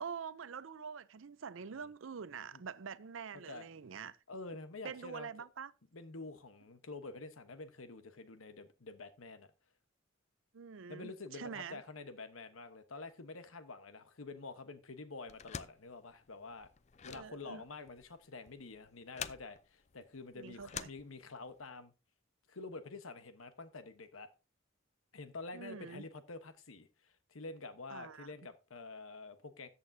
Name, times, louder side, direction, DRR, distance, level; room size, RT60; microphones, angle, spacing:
voice 1, 0.0-4.2 4.8-5.7 10.5-11.8 17.1-17.6 20.3-20.9 25.5-26.0 27.9-28.3, right 6 dB, 70° right, 0.5 m, -45 dB
voice 2, 3.3-3.7 4.3-5.3 5.9-9.5 10.9-16.7 17.0-21.9 22.5-24.3 25.1-29.7, left 3 dB, 85° left, 1.1 m, -48 dB
sound 1, 15.3-21.6, left 7 dB, 35° left, 0.4 m, -48 dB
13.5 x 8.5 x 2.7 m
head